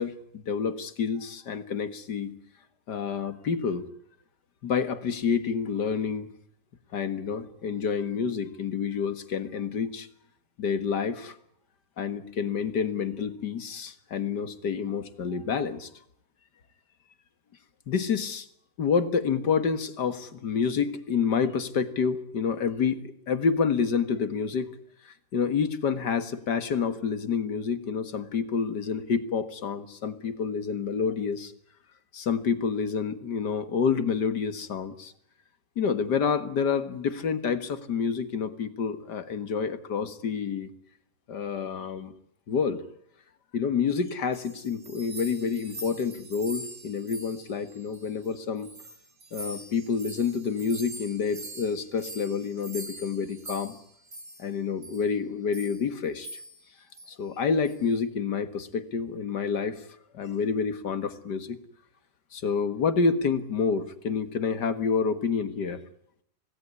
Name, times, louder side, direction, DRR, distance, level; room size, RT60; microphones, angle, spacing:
voice 1, 0.0-2.3 2.9-3.9 4.6-6.3 6.9-10.1 10.6-11.4 12.0-15.9 17.9-18.5 18.8-24.7 25.0-31.5 32.1-35.1 35.8-40.7 41.3-42.1 42.5-42.8 43.5-48.7 49.3-53.7 54.4-56.3 57.1-59.9 60.1-61.6 62.3-65.8, left 6 dB, 80° left, 12 dB, 2.3 m, -28 dB
sound 1, 44.1-48.3 48.6-54.5 54.8-55.1 55.5-55.9 56.2-56.7 56.9-57.1 57.7-57.9, right 1 dB, 50° right, 3.6 m, -43 dB
25.5 x 17.5 x 9.6 m, 0.70 s
omnidirectional pair, 1.8 m